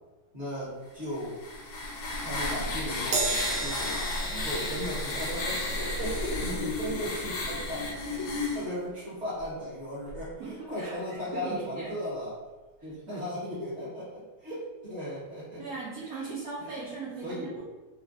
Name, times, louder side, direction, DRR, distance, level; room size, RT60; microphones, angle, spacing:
voice 1, 0.3-1.4 2.2-3.9 4.3-8.3 8.5-12.3 12.8-15.6 16.0-16.3 16.6-16.7 17.2-17.6, equal, 40° right, -10 dB, 1.3 m, -36 dB
sound 1, 1.1-8.7, left 2 dB, 75° left, 1.0 m, -33 dB
Crash cymbal, 3.1-9.7 10.1-10.3 11.3-11.4, right 3 dB, 70° right, 1.1 m, -37 dB
voice 2, 10.4-11.9 13.1-13.3 15.6-17.6, right 4 dB, 85° right, -5 dB, 0.7 m, -39 dB
3.1 x 2.3 x 2.5 m, 1.2 s
omnidirectional pair, 2.1 m